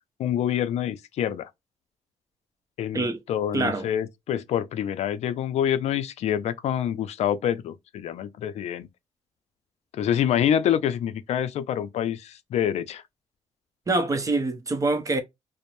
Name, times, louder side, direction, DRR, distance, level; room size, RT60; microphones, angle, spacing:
voice 1, 0.2-1.5 2.8-8.9 9.9-13.0, left 10 dB, 70° left, 0.4 m, -26 dB
voice 2, 3.5-3.9 13.9-15.2, right 2 dB, 30° right, 0.7 m, -25 dB
2.5 x 2.0 x 3.0 m
cardioid pair, 95°, 11 cm